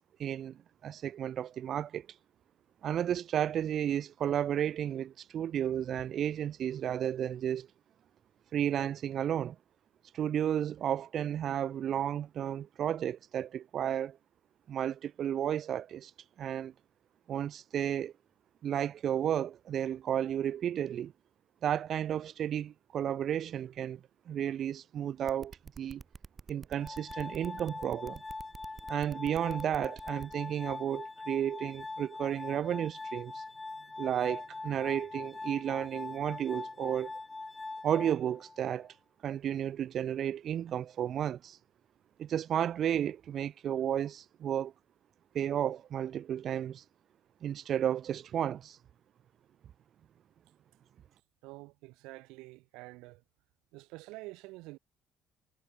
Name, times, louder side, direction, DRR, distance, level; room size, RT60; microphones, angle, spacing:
voice 1, 0.2-2.1 2.8-7.7 8.5-9.6 10.1-14.2 14.7-16.1 16.4-16.7 17.3-18.1 18.6-21.1 21.6-26.0 26.5-28.2 28.9-33.4 34.0-37.1 37.8-38.9 39.2-41.6 42.2-44.7 45.3-46.8 47.4-48.8, right 10 dB, 55° right, 0.5 m, -33 dB
sound 1, 25.3-30.3, right 5 dB, 30° right, 1.6 m, -48 dB
Glass, 26.8-38.8, left 3 dB, 20° left, 1.3 m, -43 dB
voice 2, 51.4-53.2 53.7-54.8, right 22 dB, 85° right, 3.3 m, -48 dB
cardioid pair, 95°, 0 cm